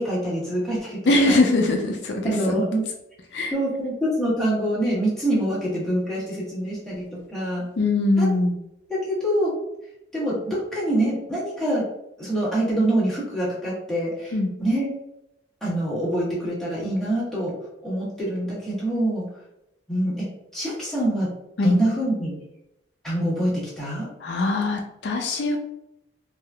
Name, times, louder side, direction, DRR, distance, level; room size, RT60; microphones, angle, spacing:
voice 1, 0.0-1.4 2.2-2.9 3.5-7.7 8.2-8.3 8.9-9.5 10.1-11.8 12.2-14.9 15.6-17.5 17.8-19.3 19.9-21.3 21.6-22.3 23.0-24.1, right 1 dB, ahead, -9 dB, 1.2 m, -25 dB
voice 2, 1.1-2.5 3.3-3.5 7.8-8.5 14.3-14.5 21.6-21.7 24.2-25.6, left 2 dB, 65° left, 2 dB, 0.4 m, -22 dB
3.5 x 2.7 x 2.2 m, 0.85 s
head